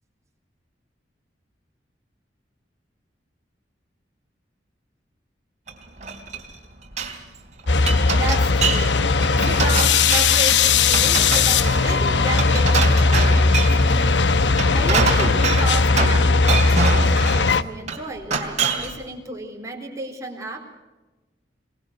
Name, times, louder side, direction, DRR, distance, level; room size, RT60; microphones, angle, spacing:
Glass, 5.7-6.6 6.8-7.2 7.6-8.9 9.2-10.5 10.9-13.9 14.4-16.2 16.5-17.4 17.9-19.0, right 4 dB, 40° right, 3.2 m, -26 dB
sound 1, 7.7-17.6, left 4 dB, 80° left, 0.9 m, -18 dB
voice 1, 8.1-8.9 9.3-14.2 14.7-16.6 16.9-20.6, right 2 dB, 20° right, 1 dB, 4.0 m, -33 dB
23.0 x 20.5 x 6.4 m, 1.1 s
head